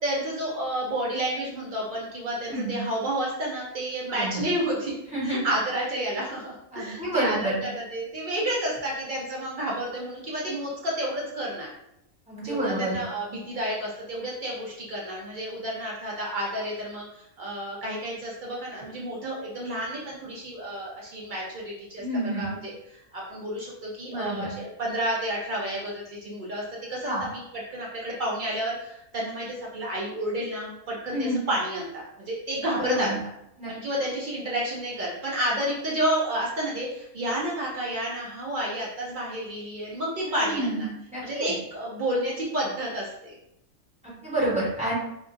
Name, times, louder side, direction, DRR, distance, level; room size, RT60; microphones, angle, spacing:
voice 1, 0.0-5.0 5.2-11.7 12.4-26.6 26.9-27.4 27.7-33.2 33.7-40.9 41.2-43.4, right 1 dB, 80° right, -5 dB, 0.4 m, -30 dB
voice 2, 2.5-2.8 4.1-4.5 5.1-5.4 6.7-7.6 12.3-13.0 22.0-22.6 24.1-24.6 27.0-27.2 31.1-31.4 32.7-33.2 33.6-33.7 40.2-41.5 44.0-44.9, right 1 dB, 5° right, -9 dB, 1.0 m, -29 dB
2.7 x 2.4 x 2.5 m, 0.82 s
omnidirectional pair, 1.5 m